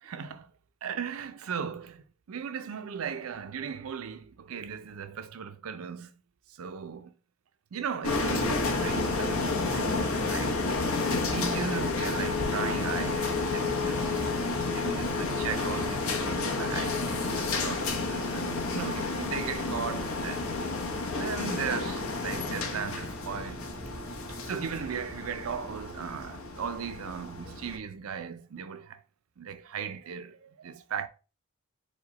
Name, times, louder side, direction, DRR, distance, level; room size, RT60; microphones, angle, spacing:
voice 1, 0.0-0.5 0.8-6.1 6.6-7.1 7.7-10.6 11.1-14.2 14.7-20.5 21.2-23.7 24.4-29.0 29.4-31.1, right 7 dB, 70° right, 0.5 m, -37 dB
sound 1, 8.0-27.8, left 3 dB, 70° left, 0.8 m, -30 dB
5.0 x 2.2 x 4.0 m
head